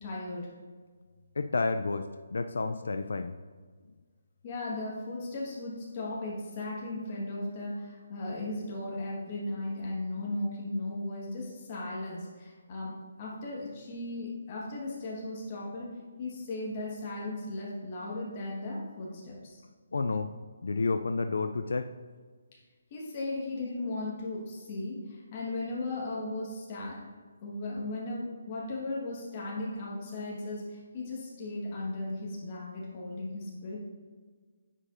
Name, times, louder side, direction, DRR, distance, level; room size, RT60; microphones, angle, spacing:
voice 1, 0.0-0.5 4.4-15.9 16.2-19.6 22.5-22.6 22.9-27.0 27.4-33.8, left 2 dB, 25° left, -4 dB, 1.4 m, -36 dB
voice 2, 1.4-3.3 19.9-20.3 20.6-21.9, left 3 dB, 75° left, 8 dB, 0.3 m, -30 dB
9.7 x 4.9 x 2.5 m, 1.5 s
hypercardioid pair, 175°, 0 cm